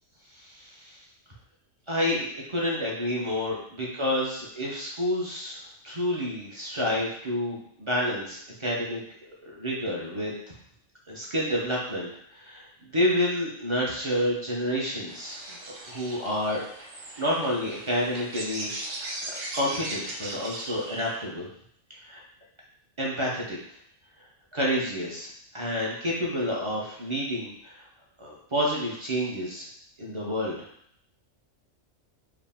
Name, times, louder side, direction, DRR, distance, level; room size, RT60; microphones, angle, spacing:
voice 1, 0.3-1.0 1.9-5.6 5.8-9.0 9.4-10.3 11.1-12.7 12.9-16.6 17.2-19.1 19.5-21.5 22.1-22.2 23.0-23.6 24.5-25.3 25.5-27.8 28.2-29.6 30.0-30.6, equal, 30° right, -5 dB, 0.7 m, -29 dB
sound 1, 15.1-21.1, right 2 dB, 75° right, 1.1 m, -38 dB
4.8 x 2.1 x 3.5 m, 0.66 s
omnidirectional pair, 1.3 m